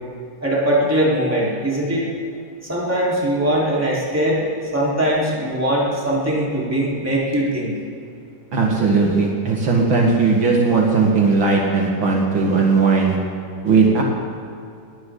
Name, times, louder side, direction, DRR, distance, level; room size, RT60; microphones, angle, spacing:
voice 1, 0.4-2.0 2.6-7.7, right 1 dB, 5° right, -6 dB, 4.1 m, -21 dB
voice 2, 8.5-13.2 13.6-14.0, right 4 dB, 65° right, -1 dB, 2.6 m, -17 dB
20.0 x 17.0 x 3.9 m, 2.5 s
omnidirectional pair, 2.4 m